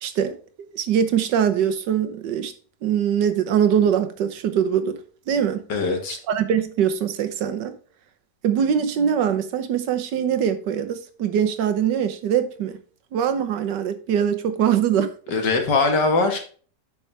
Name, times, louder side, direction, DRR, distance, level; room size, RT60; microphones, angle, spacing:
voice 1, 0.0-2.5 2.8-5.0 5.3-5.6 6.3-7.7 8.4-12.8 13.1-15.1, right 8 dB, 80° right, 1.5 m, -22 dB
voice 2, 5.7-6.2 15.3-16.4, left 3 dB, 75° left, 2.2 m, -21 dB
8.8 x 5.9 x 3.3 m
omnidirectional pair, 1.9 m